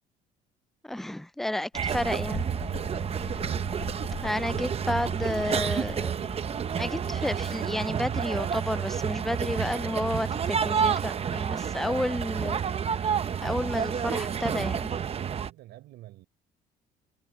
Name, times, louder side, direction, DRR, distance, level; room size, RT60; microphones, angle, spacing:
voice 1, 0.8-2.5 4.2-6.1 6.8-12.6 13.4-14.9, left 1 dB, ahead, 0.4 m, -31 dB
sound 1, 1.7-7.6, left 15 dB, 85° left, 2.0 m, -44 dB
sound 2, 1.7-15.5, right 7 dB, 35° right, 0.8 m, -30 dB
voice 2, 2.7-3.2 14.1-16.3, right 15 dB, 80° right, 6.5 m, -49 dB
cardioid pair, 110°, 17 cm